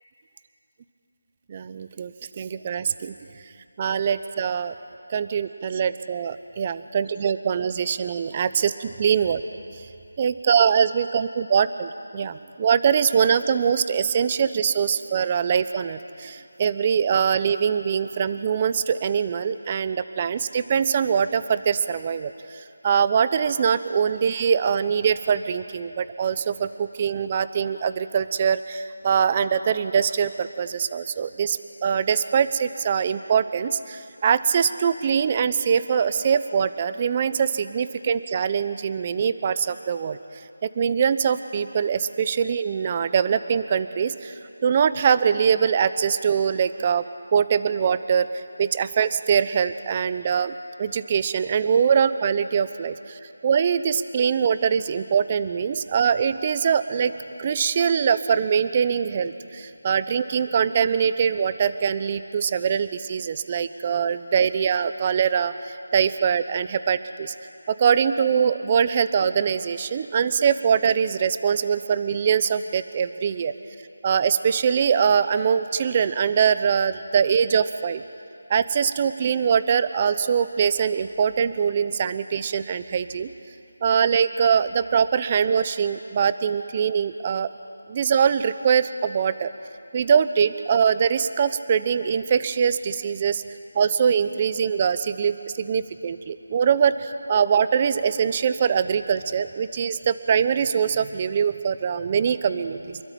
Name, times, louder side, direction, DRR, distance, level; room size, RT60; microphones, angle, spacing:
voice 1, 1.5-3.1 3.8-4.7 5.1-9.4 10.2-22.3 22.8-40.2 40.6-44.3 44.6-47.0 47.3-57.1 57.4-67.3 67.7-73.5 74.0-78.0 78.5-83.3 83.8-87.5 87.9-89.5 89.9-93.4 93.7-103.0, right 7 dB, 30° right, 13 dB, 0.9 m, -23 dB
28.0 x 21.5 x 9.2 m, 2.5 s
figure-of-eight pair, 165°, 0 cm